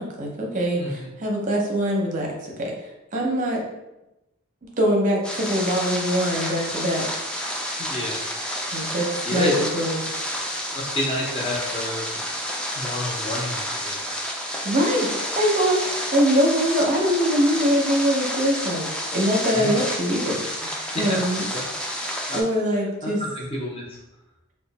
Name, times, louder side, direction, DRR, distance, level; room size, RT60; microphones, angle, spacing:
voice 1, 0.0-2.7 3.1-3.6 4.8-7.1 8.7-10.0 14.6-15.1 15.4-18.9 19.1-21.4 22.3-23.2, equal, 35° right, -1 dB, 0.7 m, -23 dB
voice 2, 0.8-1.1 7.8-8.2 9.2-9.5 10.7-12.0 12.7-14.0 19.5-19.8 20.9-21.2 21.5-21.6 22.3-22.4 23.0-24.0, left 1 dB, 25° left, -3 dB, 0.7 m, -29 dB
sound 1, 5.2-22.4, equal, 5° left, 0.3 m, -30 dB
3.1 x 2.2 x 4.0 m, 0.94 s
head